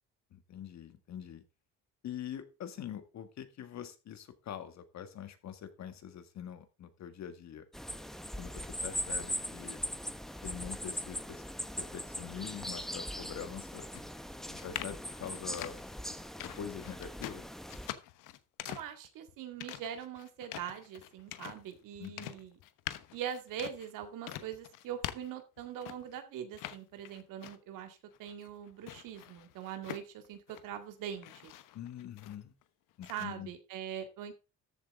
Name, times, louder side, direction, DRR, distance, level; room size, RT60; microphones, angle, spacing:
voice 1, 0.3-1.4 2.0-7.7 8.4-9.8 10.4-11.4 11.8-13.9 14.6-15.8 16.6-17.5 22.0-22.3 31.7-32.5 33.0-33.5, left 9 dB, 60° left, 9 dB, 1.8 m, -44 dB
sound 1, 7.7-17.9, equal, ahead, 0.8 m, -40 dB
sound 2, 13.9-26.2 26.5-27.8 28.1-30.8 31.1-32.6 33.0-33.2, left 13 dB, 85° left, 1.0 m, -45 dB
voice 2, 18.7-22.5 23.1-31.5 33.1-34.3, right 9 dB, 90° right, 6 dB, 2.2 m, -42 dB
13.5 x 7.7 x 3.7 m, 0.29 s
cardioid pair, 125°, 31 cm